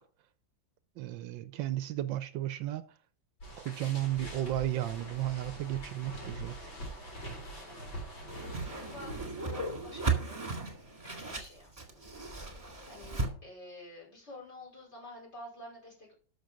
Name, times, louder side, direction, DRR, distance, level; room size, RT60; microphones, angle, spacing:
voice 1, 1.0-2.8 3.6-6.7, right 13 dB, 75° right, 1.3 m, -34 dB
sound 1, 3.4-9.3, right 1 dB, 75° left, 5.0 m, -43 dB
Whoosh swoosh swish, 8.3-13.3, right 3 dB, 20° right, 1.9 m, -35 dB
voice 2, 8.7-10.7 11.0-16.1, left 1 dB, 35° left, 5.6 m, -50 dB
12.0 x 6.1 x 5.0 m
omnidirectional pair, 2.1 m